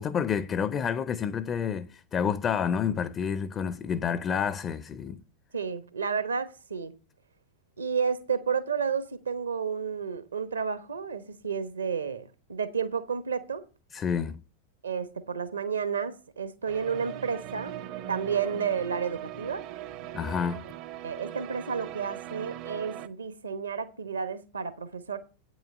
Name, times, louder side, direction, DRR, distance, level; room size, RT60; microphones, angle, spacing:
voice 1, 0.0-5.2 13.9-14.4 20.1-20.6, left 7 dB, 25° left, 0.5 m, -29 dB
voice 2, 5.5-6.9 7.8-13.6 14.8-17.7 18.1-19.6 21.0-25.2, right 6 dB, 75° right, 1.0 m, -31 dB
Greensleeves music played on keyboard by kris klavenes, 16.7-23.1, right 12 dB, 40° right, 0.7 m, -40 dB
8.7 x 6.2 x 6.4 m
figure-of-eight pair, 90°, 0 cm